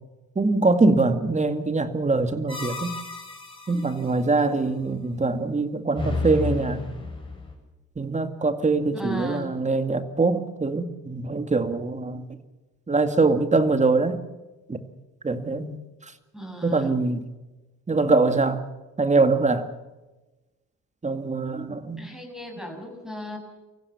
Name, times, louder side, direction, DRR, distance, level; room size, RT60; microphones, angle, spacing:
voice 1, 0.4-2.9 3.7-6.8 8.0-12.4 12.9-14.2 14.7-14.8 15.2-15.8 16.6-17.3 17.9-18.6 19.0-19.7 21.0-22.0, right 3 dB, 25° right, 9 dB, 2.2 m, -23 dB
sound 1, 2.5-4.1 5.9-7.5, left 3 dB, 15° left, 7.6 m, -32 dB
voice 2, 8.9-9.6 16.3-16.9 22.0-23.4, equal, ahead, 4 dB, 7.2 m, -35 dB
24.5 x 15.5 x 7.1 m, 1.1 s
cardioid pair, 90°, 30 cm